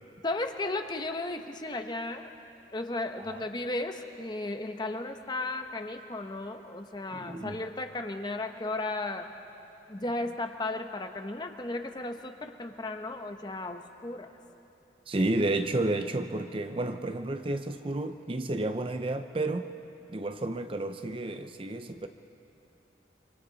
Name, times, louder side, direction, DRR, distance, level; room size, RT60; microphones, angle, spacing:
voice 1, 0.2-2.3 2.7-9.3 9.9-14.3, left 2 dB, 25° left, 6 dB, 0.9 m, -35 dB
voice 2, 7.1-7.6 15.1-19.7 20.1-22.1, right 2 dB, 30° right, 8 dB, 0.5 m, -31 dB
25.5 x 25.0 x 4.0 m, 2.9 s
head